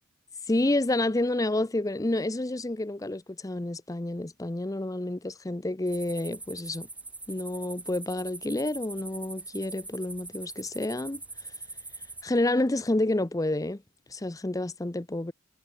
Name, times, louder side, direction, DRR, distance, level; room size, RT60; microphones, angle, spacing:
voice 1, 0.5-6.9 7.3-11.2 12.2-13.8 14.1-15.3, left 1 dB, 15° left, 0.6 m, -29 dB
sound 1, 5.9-12.3, right 3 dB, 5° right, 1.5 m, -43 dB
head